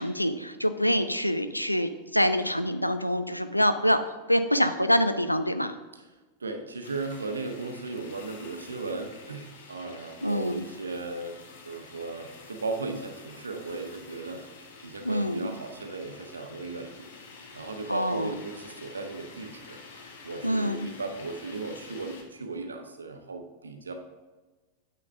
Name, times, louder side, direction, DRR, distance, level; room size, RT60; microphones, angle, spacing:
voice 1, 0.0-5.7 10.2-10.6 15.0-15.5 17.9-18.3 20.4-20.9, equal, 90° left, 10 dB, 0.5 m, -26 dB
voice 2, 6.4-14.4 14.8-17.1 17.5-19.8 20.2-23.9, right 3 dB, 75° right, 5 dB, 1.0 m, -36 dB
sound 1, 6.8-22.2, left 4 dB, 55° left, 1.3 m, -49 dB
9.3 x 6.9 x 3.6 m, 1.2 s
figure-of-eight pair, 90°, 0 cm